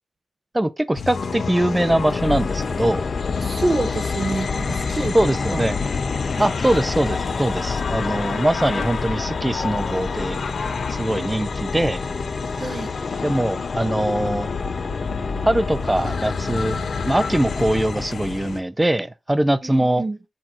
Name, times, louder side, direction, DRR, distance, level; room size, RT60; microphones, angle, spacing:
voice 1, 0.5-3.0 5.1-5.8 6.4-10.4 10.9-12.0 13.2-14.5 15.4-16.8 17.0-20.0, right 1 dB, 15° right, 0.6 m, -22 dB
sound 1, 0.9-18.6, left 4 dB, 85° left, 1.3 m, -33 dB
sound 2, 1.1-18.6, left 4 dB, 60° left, 0.6 m, -28 dB
voice 2, 3.4-5.2 5.5-5.6 6.3-6.5 12.6-12.9 19.6-20.2, right 2 dB, 35° right, 0.9 m, -27 dB
6.5 x 4.0 x 4.4 m
wide cardioid pair, 85°, 0 cm